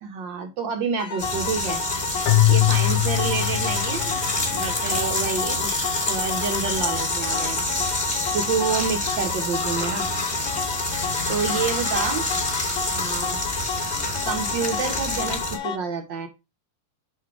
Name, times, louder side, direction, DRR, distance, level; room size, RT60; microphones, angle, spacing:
voice 1, 0.0-1.8 2.5-4.2 4.5-5.7 6.1-7.7 8.3-10.1 11.3-12.2 12.9-13.4 14.2-16.3, right 5 dB, 75° right, 4 dB, 1.0 m, -28 dB
sound 1, 1.0-15.8, left 5 dB, 60° left, 2.2 m, -31 dB
sound 2, 1.2-15.6, left 2 dB, 20° left, 1.4 m, -27 dB
Keyboard (musical), 2.3-4.5, left 15 dB, 80° left, 2.0 m, -21 dB
6.5 x 5.3 x 4.8 m, 0.25 s
omnidirectional pair, 3.7 m